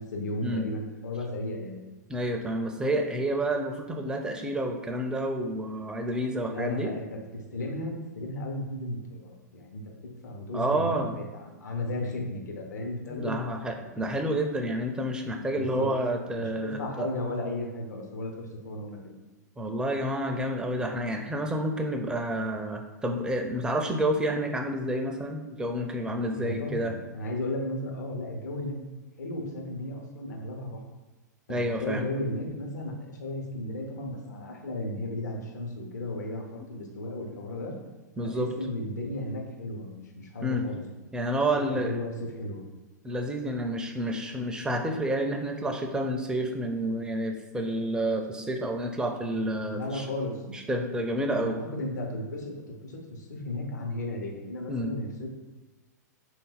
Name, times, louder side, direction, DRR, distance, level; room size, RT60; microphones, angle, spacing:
voice 1, 0.0-1.8 6.5-13.3 13.8-13.9 15.5-15.9 16.3-19.1 26.4-28.8 29.2-30.8 31.5-37.7 38.2-40.8 41.6-42.6 49.7-50.4 51.3-55.3, left 1 dB, 70° left, 1 dB, 0.9 m, -35 dB
voice 2, 2.1-6.9 10.5-11.1 13.1-17.1 19.6-26.9 31.5-32.0 38.2-38.5 40.4-40.6 41.1-42.0 43.0-50.1 50.5-51.6 54.7-54.9, right 1 dB, 10° right, 3 dB, 0.4 m, -29 dB
3.9 x 2.6 x 3.9 m, 1.2 s
figure-of-eight pair, 105°, 10 cm